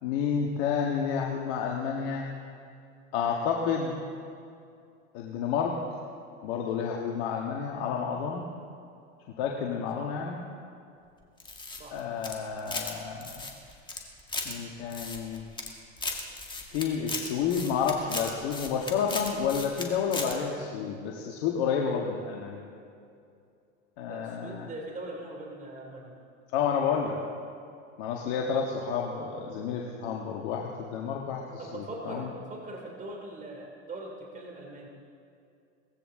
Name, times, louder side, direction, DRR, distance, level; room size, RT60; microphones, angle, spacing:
voice 1, 0.0-2.3 3.1-4.0 5.1-5.8 6.4-8.5 9.4-10.4 11.9-13.5 14.4-15.5 16.7-22.6 24.0-24.7 26.5-27.2 28.0-31.4 31.7-32.3, left 6 dB, 60° left, -1 dB, 1.7 m, -30 dB
sound 1, 11.4-12.9 13.2-14.5 14.9-15.7 16.0-19.9 20.1-20.3, left 3 dB, 10° left, 2.0 m, -36 dB
voice 2, 24.1-26.1 28.7-28.9 31.6-34.9, right 2 dB, 20° right, -1 dB, 2.9 m, -41 dB
19.0 x 15.5 x 3.8 m, 2.5 s
hypercardioid pair, 105°, 39 cm